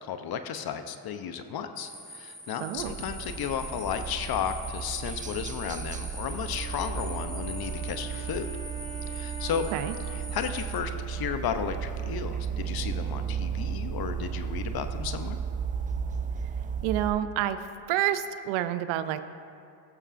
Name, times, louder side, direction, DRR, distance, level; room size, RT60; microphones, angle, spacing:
voice 1, 0.0-8.5 9.1-9.7 10.1-15.4, left 8 dB, 50° left, 9 dB, 0.7 m, -34 dB
sound 1, 1.8-10.8, equal, ahead, 1.0 m, -43 dB
voice 2, 2.6-2.9 9.7-9.9 16.8-17.6 17.9-19.2, right 12 dB, 75° right, 11 dB, 0.6 m, -28 dB
sound 2, 2.8-17.1, right 7 dB, 20° right, 0.3 m, -34 dB
Wind instrument woodwind instrument, 6.5-11.9, right 2 dB, 30° left, 1.3 m, -44 dB
15.5 x 6.7 x 2.5 m, 2.5 s
supercardioid pair, 80°, 48 cm